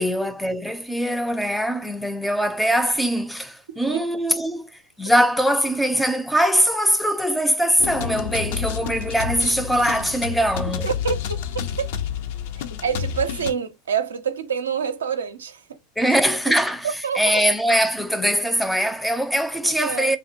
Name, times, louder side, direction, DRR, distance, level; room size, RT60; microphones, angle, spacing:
voice 1, 0.0-10.9 16.0-16.9 17.2-20.2, equal, 5° left, 0.4 m, -22 dB
sound 1, 7.8-13.5, left 8 dB, 65° left, 0.4 m, -29 dB
voice 2, 10.8-11.4 11.8-11.9 12.8-15.8 16.5-16.6 17.0-17.4 19.6-20.2, right 7 dB, 85° right, 0.4 m, -27 dB
3.3 x 2.1 x 2.8 m
hypercardioid pair, 85°, 0 cm